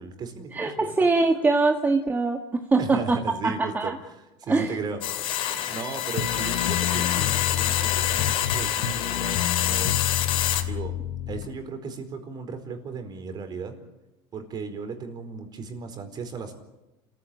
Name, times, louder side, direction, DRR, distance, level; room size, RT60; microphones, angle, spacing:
voice 1, 0.0-0.9 2.8-3.9 4.4-5.0 5.5-10.1 10.7-10.9 11.3-13.7 14.3-16.6, right 5 dB, 35° right, 7 dB, 4.5 m, -36 dB
voice 2, 0.5-3.2 3.4-4.0 4.5-4.8, right 3 dB, 15° right, 3 dB, 1.7 m, -23 dB
sound 1, 5.0-10.6, left 11 dB, 50° left, 2.8 m, -26 dB
sound 2, 6.2-11.5, left 10 dB, 70° left, 1.7 m, -29 dB
28.5 x 15.0 x 8.7 m, 1.0 s
supercardioid pair, 120°, 11 cm